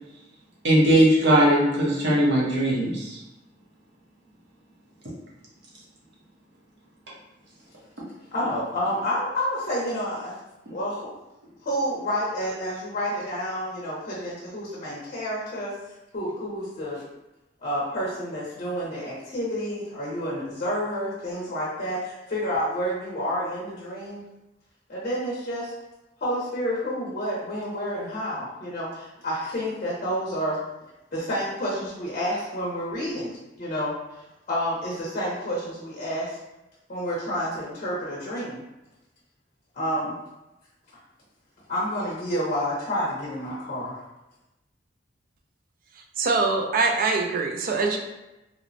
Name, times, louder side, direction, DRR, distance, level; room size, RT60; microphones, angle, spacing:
voice 1, 0.6-3.2, right 1 dB, 65° right, -5 dB, 0.8 m, -19 dB
voice 2, 8.3-10.3 10.7-11.0 11.7-15.7 16.1-17.0 17.6-24.2 24.9-25.7 26.2-28.9 29.2-30.6 31.1-33.3 33.6-33.9 34.5-36.3 36.9-38.6 39.8-40.1 41.7-43.9, equal, 45° left, -6 dB, 0.6 m, -29 dB
voice 3, 46.2-48.0, right 3 dB, 50° right, 3 dB, 0.3 m, -23 dB
3.0 x 2.0 x 2.6 m, 0.97 s
head